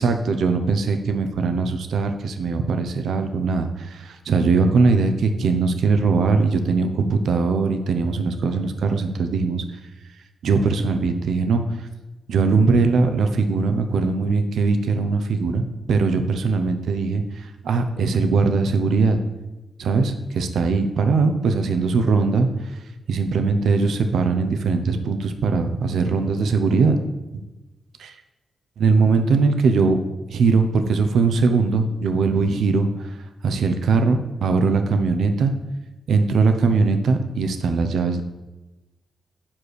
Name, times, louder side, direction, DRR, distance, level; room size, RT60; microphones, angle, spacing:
voice 1, 0.0-9.6 10.4-11.7 12.3-17.2 17.6-19.2 19.8-22.5 23.1-27.0 28.8-30.0 30.3-32.9 33.4-35.5 36.1-38.2, right 4 dB, 75° right, 7 dB, 0.8 m, -20 dB
7.3 x 4.9 x 6.3 m, 1.0 s
supercardioid pair, 40°, 0 cm